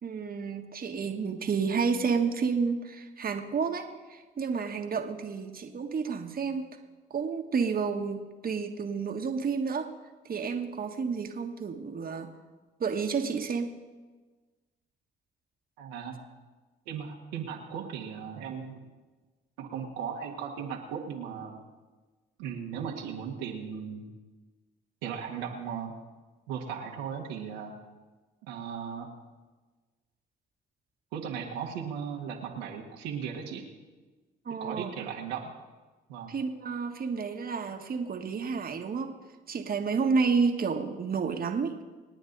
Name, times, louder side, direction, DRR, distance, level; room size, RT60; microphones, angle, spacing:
voice 1, 0.0-6.8 7.1-9.9 10.2-12.3 12.8-13.7 34.4-34.9 36.3-39.1 39.5-41.8, right 5 dB, 45° right, 5 dB, 1.6 m, -30 dB
voice 2, 15.8-16.2 16.8-18.8 19.6-21.6 22.4-24.1 25.0-25.9 26.5-27.7 28.4-29.1 31.1-33.6 34.6-35.5 36.1-36.3, right 7 dB, 90° right, 0 dB, 1.7 m, -37 dB
27.5 x 9.3 x 4.0 m, 1.3 s
hypercardioid pair, 55°, 21 cm